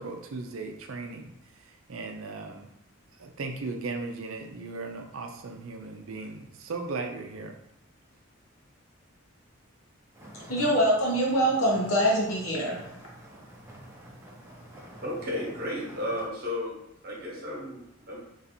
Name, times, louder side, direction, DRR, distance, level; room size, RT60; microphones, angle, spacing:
voice 1, 0.0-1.3 1.9-2.7 3.2-7.5, right 3 dB, 75° right, 4 dB, 0.5 m, -37 dB
sound 1, 10.1-16.3, right 1 dB, 10° right, 0.6 m, -48 dB
voice 2, 10.5-12.8, equal, 80° left, -2 dB, 1.1 m, -24 dB
voice 3, 15.0-16.8 17.0-18.2, left 1 dB, 45° right, -3 dB, 1.0 m, -33 dB
3.1 x 2.6 x 4.2 m, 0.78 s
head